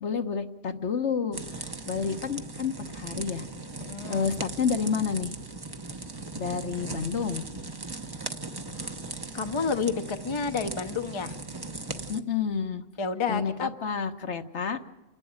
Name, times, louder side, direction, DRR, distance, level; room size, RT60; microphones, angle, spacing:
voice 1, 0.0-1.4 1.9-3.5 4.1-5.3 6.4-7.4 12.1-12.8 13.3-15.0, left 6 dB, 65° left, 6 dB, 1.4 m, -29 dB
sound 1, 1.3-12.2, right 3 dB, 20° right, 0.8 m, -38 dB
voice 2, 3.8-4.3 8.7-8.9 9.3-11.4 13.0-13.7, left 5 dB, 25° left, 7 dB, 0.7 m, -30 dB
28.5 x 11.5 x 8.9 m, 1.1 s
omnidirectional pair, 1.3 m